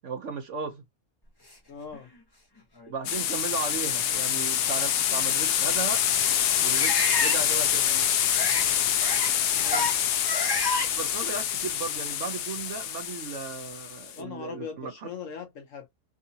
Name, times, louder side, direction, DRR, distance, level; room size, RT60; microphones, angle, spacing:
voice 1, 0.0-0.8 2.9-6.0 6.6-6.9 7.2-8.1 10.9-15.1, right 5 dB, 60° right, 0.9 m, -35 dB
voice 2, 1.7-2.1 9.6-9.9 14.2-15.9, left 6 dB, 60° left, 1.1 m, -40 dB
sound 1, 1.9-2.0 2.8-2.9 4.5-4.6 6.7-7.4 8.3-8.7 9.0-9.3 9.6-9.9 10.2-10.9, left 2 dB, 20° left, 0.9 m, -29 dB
sound 2, 3.1-14.1, left 10 dB, 85° left, 1.2 m, -26 dB
3.7 x 2.6 x 2.7 m
omnidirectional pair, 1.7 m